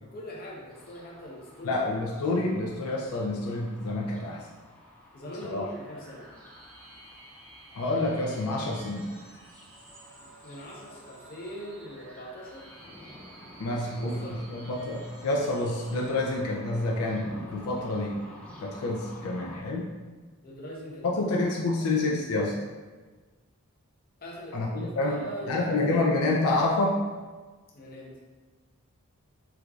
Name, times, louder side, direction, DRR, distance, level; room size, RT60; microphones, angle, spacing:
voice 1, 0.0-1.8 5.1-6.3 10.4-12.7 13.7-14.5 20.4-21.2 21.6-21.9 24.2-26.0 27.7-28.1, equal, 40° left, -4 dB, 0.7 m, -42 dB
sound 1, 0.7-19.6, left 1 dB, 5° left, 0.3 m, -50 dB
voice 2, 1.6-4.4 5.4-5.7 7.7-9.1 13.6-18.2 18.6-19.9 21.0-22.5 24.5-27.0, left 2 dB, 75° left, -2 dB, 0.4 m, -28 dB
sound 2, 5.6-16.3, right 1 dB, 75° right, 0.8 m, -52 dB
4.5 x 2.5 x 2.3 m, 1.4 s
head